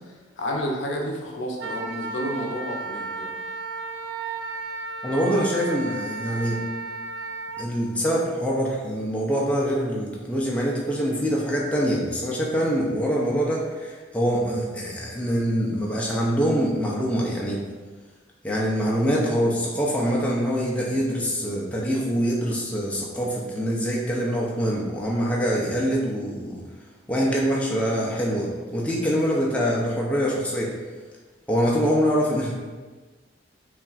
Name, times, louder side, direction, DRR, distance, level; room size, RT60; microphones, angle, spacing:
voice 1, 0.4-3.3, equal, 75° left, 0 dB, 0.6 m, -30 dB
Wind instrument woodwind instrument, 1.6-7.7, right 3 dB, 80° right, 0.4 m, -34 dB
voice 2, 5.0-6.6 7.6-17.6 18.4-26.6 27.1-30.7 31.5-32.5, equal, 5° left, -4 dB, 0.5 m, -24 dB
5.7 x 2.5 x 2.4 m, 1.3 s
head